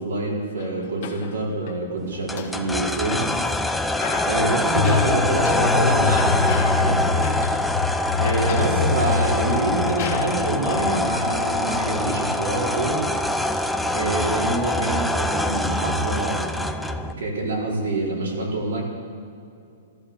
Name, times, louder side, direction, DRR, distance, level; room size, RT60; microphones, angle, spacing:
voice 1, 0.0-3.3 4.2-7.4 8.2-13.0 13.9-18.8, right 2 dB, 80° right, -1 dB, 4.4 m, -26 dB
sound 1, 0.6-1.7 2.1-3.6 3.9-6.9 7.2-7.6 7.9-9.0 9.5-9.6 10.0-11.0, left 7 dB, 35° left, 1.7 m, -36 dB
sound 2, 2.3-17.1, left 1 dB, ahead, 0.4 m, -24 dB
sound 3, 4.8-14.6 14.9-15.0, left 6 dB, 55° left, 0.9 m, -27 dB
15.0 x 13.5 x 7.1 m, 2.5 s
hypercardioid pair, 175°, 0 cm